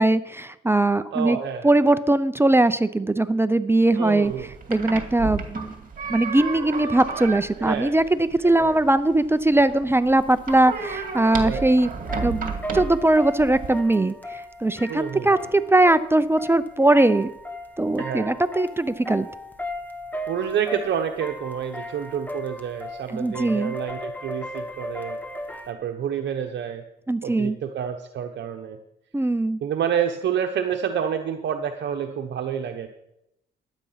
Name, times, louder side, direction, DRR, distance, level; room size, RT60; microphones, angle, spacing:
voice 1, 0.0-1.4 1.6-4.3 4.7-5.7 6.1-11.9 12.2-17.3 17.8-19.3 23.1-23.7 27.1-27.6 29.1-29.6, right 2 dB, 10° right, 13 dB, 0.6 m, -20 dB
voice 2, 1.1-2.0 4.0-4.5 7.6-7.9 8.4-8.8 11.4-11.7 14.9-15.4 18.0-18.3 20.3-25.2 25.7-26.8 27.2-28.8 29.6-32.9, right 8 dB, 65° right, 5 dB, 1.0 m, -28 dB
sound 1, 4.3-13.8, right 5 dB, 45° right, 2.2 m, -33 dB
sound 2, 10.0-25.7, left 1 dB, 10° left, 1.4 m, -36 dB
12.0 x 9.1 x 5.8 m, 0.82 s
cardioid pair, 90°, 20 cm